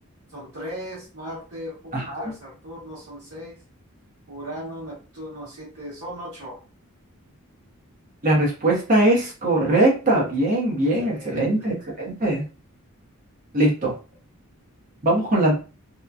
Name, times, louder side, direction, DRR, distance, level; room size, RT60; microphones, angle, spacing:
voice 1, 0.3-3.5 4.3-6.6 11.0-11.7, equal, 70° right, -8 dB, 1.3 m, -37 dB
voice 2, 1.9-2.3 8.2-12.4 13.5-13.9 15.0-15.5, right 1 dB, 40° right, -2 dB, 0.9 m, -21 dB
2.9 x 2.2 x 2.4 m, 0.34 s
head